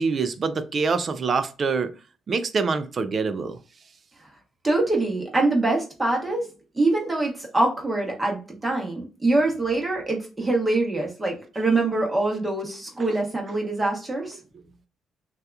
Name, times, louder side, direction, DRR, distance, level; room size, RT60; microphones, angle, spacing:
voice 1, 0.0-1.9 2.3-3.6, right 4 dB, 45° right, 11 dB, 0.3 m, -25 dB
voice 2, 4.6-6.5 6.7-14.4, right 2 dB, 20° right, 0 dB, 1.0 m, -24 dB
2.7 x 2.3 x 2.3 m, 0.34 s
cardioid pair, 90°, 0 cm